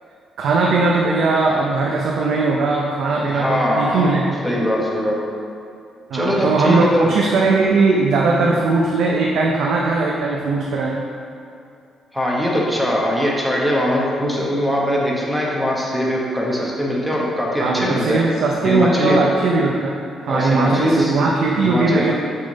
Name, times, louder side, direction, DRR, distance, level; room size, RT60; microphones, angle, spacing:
voice 1, 0.4-4.4 6.1-11.0 17.6-19.9 20.2-22.1, right 3 dB, 75° right, -2 dB, 0.6 m, -19 dB
voice 2, 3.2-4.1 4.4-5.2 6.1-7.1 12.1-18.2 18.6-19.2 20.3-21.1 21.6-22.1, equal, ahead, -4 dB, 1.2 m, -21 dB
6.5 x 3.6 x 4.0 m, 2.5 s
cardioid pair, 90°, 0 cm